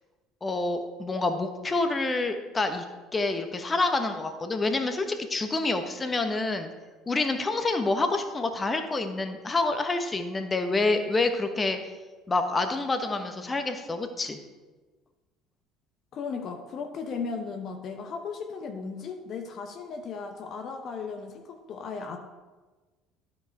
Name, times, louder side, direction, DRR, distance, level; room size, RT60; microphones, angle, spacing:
voice 1, 0.4-2.8 3.1-6.7 7.1-11.8 12.3-14.4, left 3 dB, 25° left, 7 dB, 1.1 m, -27 dB
voice 2, 16.1-22.2, left 5 dB, 50° left, 4 dB, 0.9 m, -36 dB
12.0 x 5.6 x 4.6 m, 1.3 s
hypercardioid pair, 65°, 0 cm